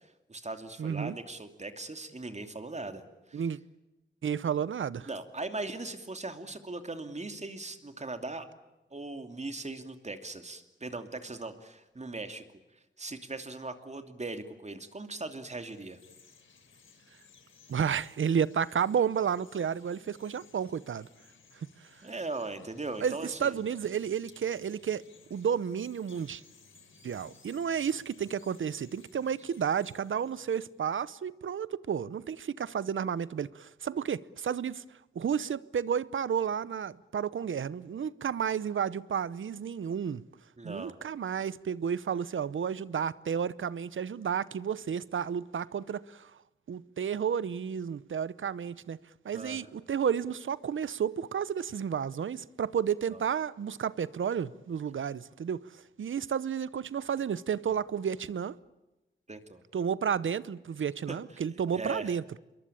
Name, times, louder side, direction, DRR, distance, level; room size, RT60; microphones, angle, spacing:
voice 1, 0.0-3.4 5.1-8.5 8.9-12.4 12.7-16.0 22.0-23.6 40.6-41.0 49.3-49.7 53.1-53.2 59.3-59.6 61.1-61.4 61.7-62.2, right 2 dB, 35° right, 2.8 m, -39 dB
voice 2, 0.8-1.1 3.3-3.6 4.2-5.1 17.7-21.1 23.0-23.1 23.4-25.0 25.3-26.4 27.0-34.8 35.1-40.2 40.6-46.3 46.7-49.0 49.2-58.6 59.7-62.2, right 7 dB, 80° right, 0.8 m, -31 dB
Chirp tweet, 15.3-31.0, left 5 dB, 85° left, 3.5 m, -60 dB
27.0 x 22.5 x 8.7 m
wide cardioid pair, 75°, 20 cm